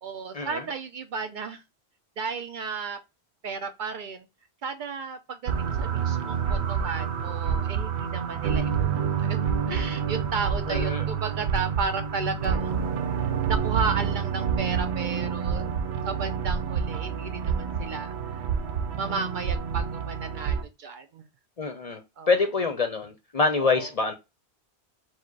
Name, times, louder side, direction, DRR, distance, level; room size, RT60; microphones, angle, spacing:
voice 1, 0.0-1.6 2.2-3.0 3.4-4.3 4.6-12.7 13.0-15.7 16.1-18.4 19.0-21.2 22.2-22.3 23.6-23.9, right 5 dB, 60° right, 0.6 m, -34 dB
sound 1, 5.5-20.6, right 7 dB, 90° right, 0.9 m, -28 dB
voice 2, 10.7-11.1 21.6-22.0 22.3-24.1, left 4 dB, 45° left, 0.6 m, -25 dB
4.5 x 2.1 x 4.5 m
omnidirectional pair, 1.1 m